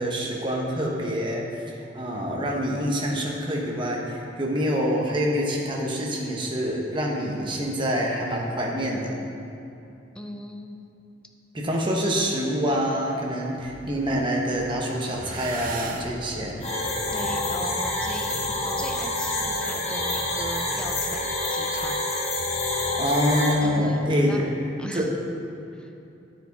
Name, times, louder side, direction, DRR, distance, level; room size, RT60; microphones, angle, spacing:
voice 1, 0.0-1.5 1.7-9.1 11.5-16.6 23.0-24.4 24.9-25.1, equal, 25° right, -1 dB, 0.9 m, -26 dB
voice 2, 10.2-10.8 17.1-22.5 23.6-24.4 24.8-25.1 25.7-25.9, equal, 5° left, 3 dB, 0.4 m, -38 dB
sound 1, 12.5-12.9 13.4-14.4 14.7-21.0, right 3 dB, 45° right, 0.5 m, -41 dB
Bass guitar, 13.6-14.8 15.1-17.2 17.5-19.6 19.9-22.0 22.3-23.2, right 1 dB, 65° right, 1.3 m, -43 dB
sound 2, 16.6-23.5, left 2 dB, 35° left, 1.1 m, -27 dB
9.5 x 4.7 x 4.0 m, 2.8 s
head